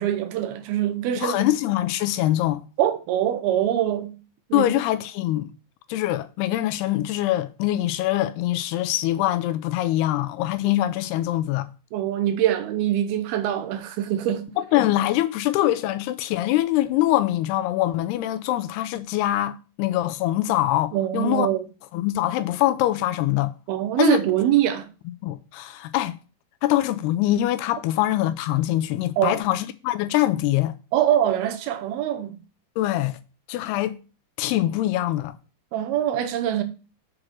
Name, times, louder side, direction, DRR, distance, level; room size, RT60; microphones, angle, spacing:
voice 1, 0.0-1.4 2.8-4.2 4.5-4.7 11.9-14.5 20.9-21.6 23.7-24.9 29.2-29.4 30.9-32.4 35.7-36.6, right 11 dB, 75° right, 2.6 m, -23 dB
voice 2, 1.2-2.6 4.5-5.5 5.9-11.7 14.6-21.5 21.9-23.5 24.0-24.2 25.2-26.2 26.6-30.7 32.8-33.2 33.5-34.0 34.4-35.3, left 14 dB, 80° left, 2.5 m, -23 dB
7.5 x 4.8 x 6.2 m
omnidirectional pair, 4.9 m